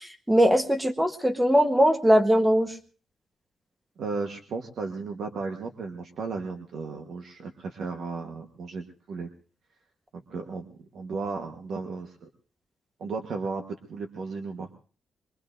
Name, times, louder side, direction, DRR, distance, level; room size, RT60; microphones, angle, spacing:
voice 1, 0.0-2.7, equal, 10° right, 7 dB, 1.2 m, -21 dB
voice 2, 4.0-9.3 10.3-12.3 13.0-13.6 13.9-14.7, right 4 dB, 70° right, 4 dB, 1.3 m, -35 dB
23.5 x 22.0 x 2.6 m, 0.40 s
cardioid pair, 130°, 0 cm